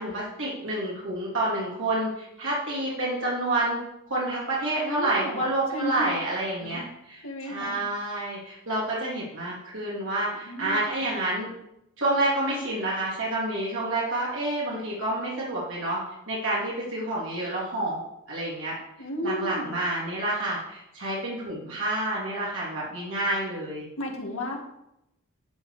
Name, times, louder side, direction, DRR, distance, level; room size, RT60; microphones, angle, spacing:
voice 1, 0.0-3.8 4.1-11.5 12.0-16.0 16.3-18.0 18.3-18.8 19.2-23.9, right 1 dB, 65° right, -6 dB, 3.0 m, -29 dB
voice 2, 4.8-6.2 6.6-6.8 7.2-7.8 10.5-10.9 19.0-19.7 24.0-24.6, equal, 70° left, 0 dB, 2.4 m, -33 dB
11.5 x 5.3 x 6.9 m, 0.82 s
head